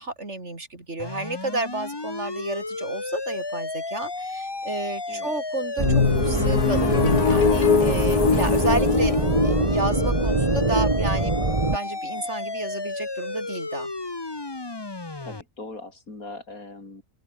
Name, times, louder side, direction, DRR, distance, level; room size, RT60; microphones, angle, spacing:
voice 1, 0.0-9.2 9.4-11.4 11.7-13.9, right 2 dB, 50° right, 4.3 m, -31 dB
sound 1, 1.0-15.4, left 3 dB, 20° left, 1.1 m, -33 dB
sound 2, 5.8-11.6, left 6 dB, 85° left, 2.4 m, -23 dB
sound 3, 5.8-11.8, right 3 dB, 20° right, 1.6 m, -24 dB
voice 2, 15.2-17.0, left 2 dB, 70° left, 4.9 m, -40 dB
open air
omnidirectional pair, 1.6 m